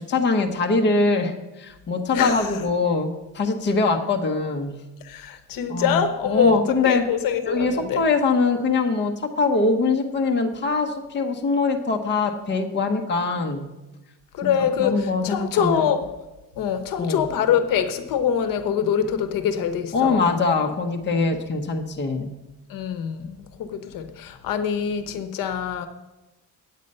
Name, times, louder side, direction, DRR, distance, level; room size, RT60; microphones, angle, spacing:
voice 1, 0.0-3.1 3.3-4.8 5.7-6.0 6.3-7.0 7.4-13.7 14.4-15.9 17.0-17.3 19.9-22.3, left 3 dB, 35° left, 3 dB, 1.0 m, -23 dB
voice 2, 2.1-2.6 5.0-8.0 14.3-16.0 16.6-20.3 21.1-21.3 22.7-25.9, left 8 dB, 80° left, 10 dB, 0.9 m, -24 dB
9.1 x 8.6 x 5.4 m, 1.0 s
cardioid pair, 160°, 33 cm